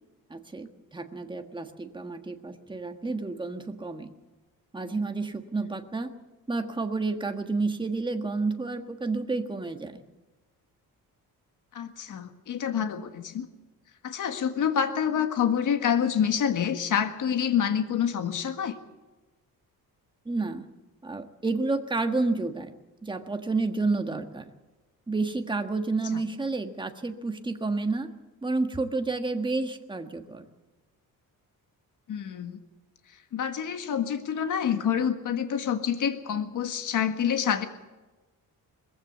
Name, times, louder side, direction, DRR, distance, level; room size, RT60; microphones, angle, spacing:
voice 1, 0.3-4.1 4.7-6.1 6.5-10.0 20.2-20.7 21.0-22.7 23.0-24.4 25.1-28.1 28.4-30.5, right 3 dB, 15° right, 6 dB, 1.5 m, -30 dB
voice 2, 11.7-13.5 14.0-18.8 26.1-26.2 32.1-32.6 33.3-37.7, left 8 dB, 60° left, 7 dB, 1.7 m, -27 dB
21.0 x 15.5 x 8.0 m, 1.2 s
cardioid pair, 145°, 35 cm